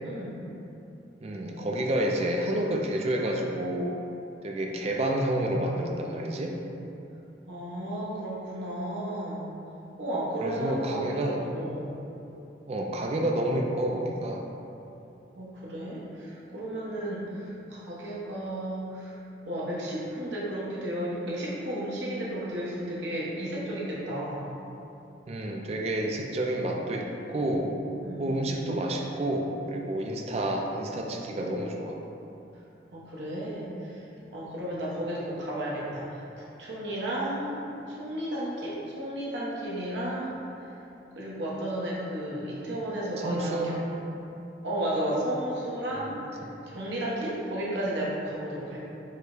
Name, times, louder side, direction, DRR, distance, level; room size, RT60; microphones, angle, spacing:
voice 1, 0.0-0.5 7.5-9.5 10.0-11.9 15.3-19.2 19.4-24.5 28.0-28.4 32.9-34.0 34.3-40.4 41.1-44.0 44.6-46.4 46.7-48.9, right 1 dB, 85° right, -6 dB, 0.9 m, -33 dB
voice 2, 1.2-4.0 4.4-6.6 10.4-11.4 12.7-14.5 25.3-27.7 28.2-32.0 43.2-43.8 45.9-46.6, right 1 dB, 35° right, 1 dB, 0.4 m, -29 dB
5.4 x 2.1 x 3.7 m, 2.9 s
head